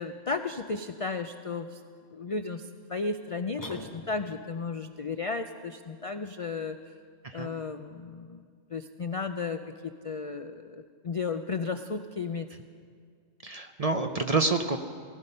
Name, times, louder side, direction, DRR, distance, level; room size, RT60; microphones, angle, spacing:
voice 1, 0.0-1.8 2.1-6.8 7.3-8.4 8.7-9.6 10.0-12.5, left 4 dB, 60° left, 8 dB, 0.3 m, -34 dB
sound 1, 3.6-4.5, left 1 dB, 15° left, 1.0 m, -42 dB
voice 2, 13.4-14.8, right 3 dB, 45° right, 6 dB, 0.5 m, -28 dB
17.0 x 15.5 x 5.5 m, 2.1 s
omnidirectional pair, 1.3 m